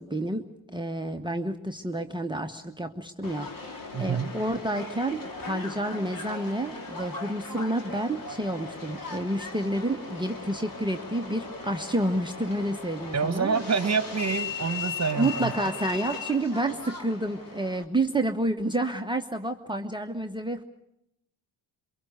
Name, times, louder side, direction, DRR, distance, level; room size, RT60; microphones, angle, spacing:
voice 1, 0.0-13.6 15.2-20.6, right 1 dB, 10° right, 8 dB, 1.1 m, -29 dB
Subway metro underground, 3.2-17.8, left 4 dB, 45° left, 2.8 m, -38 dB
voice 2, 3.9-4.3 13.1-15.5, right 5 dB, 35° right, 11 dB, 1.6 m, -27 dB
24.0 x 22.5 x 6.6 m, 0.82 s
supercardioid pair, 65°, 49 cm